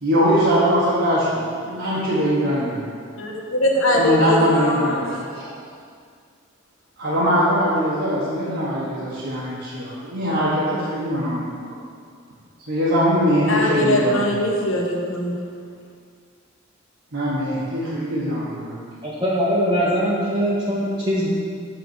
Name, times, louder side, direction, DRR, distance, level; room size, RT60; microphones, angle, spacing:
voice 1, 0.0-2.9 3.9-5.5 7.0-11.5 12.7-14.5 17.1-18.8, equal, 60° right, -9 dB, 1.3 m, -22 dB
voice 2, 3.2-5.0 13.5-15.4, left 1 dB, 75° left, 0 dB, 1.1 m, -21 dB
voice 3, 19.0-21.3, equal, 20° right, -8 dB, 1.0 m, -21 dB
8.0 x 4.2 x 6.1 m, 2.2 s
head